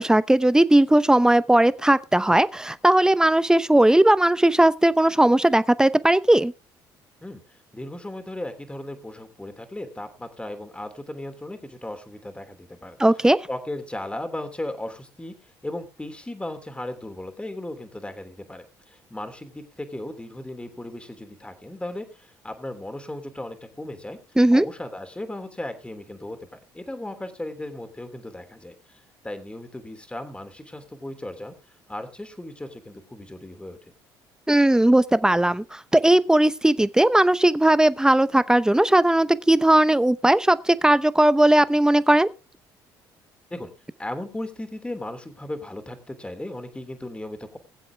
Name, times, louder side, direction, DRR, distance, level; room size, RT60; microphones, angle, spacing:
voice 1, 0.0-6.5 13.0-13.4 24.4-24.7 34.5-42.3, right 1 dB, 5° right, 0.8 m, -18 dB
voice 2, 7.7-13.0 13.5-24.2 24.5-31.5 31.9-33.9 43.5-43.7 44.0-47.6, left 1 dB, 10° left, 3.1 m, -36 dB
21.0 x 7.7 x 3.5 m
supercardioid pair, 65°, 10 cm